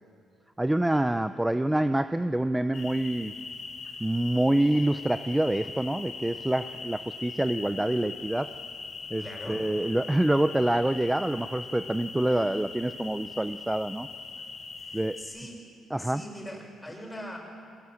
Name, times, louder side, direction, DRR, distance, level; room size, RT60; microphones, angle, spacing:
voice 1, 0.6-3.3 4.0-8.5 9.1-14.1 14.9-15.2 15.9-16.2, right 1 dB, 10° right, 11 dB, 0.6 m, -26 dB
sound 1, 2.7-15.2, left 4 dB, 55° left, 4.8 m, -41 dB
voice 2, 9.2-9.6 14.8-15.6 16.0-17.4, equal, 15° left, 0 dB, 6.6 m, -41 dB
23.0 x 19.5 x 7.8 m, 2.5 s
cardioid pair, 90°, 0 cm